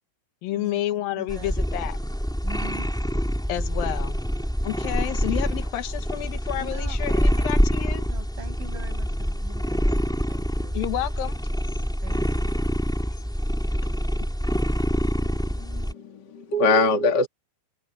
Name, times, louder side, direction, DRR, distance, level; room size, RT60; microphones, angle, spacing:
voice 1, 0.4-2.0 3.5-4.2 4.6-8.1 10.7-11.4, left 13 dB, 70° left, 2.3 m, -30 dB
voice 2, 1.2-1.6 2.4-2.9 6.5-7.5 8.0-10.8 12.0-12.5, right 2 dB, 75° right, 10.0 m, -43 dB
sound 1, 1.3-15.9, equal, ahead, 3.6 m, -26 dB
voice 3, 15.2-17.3, left 3 dB, 35° left, 1.9 m, -23 dB
omnidirectional pair, 5.5 m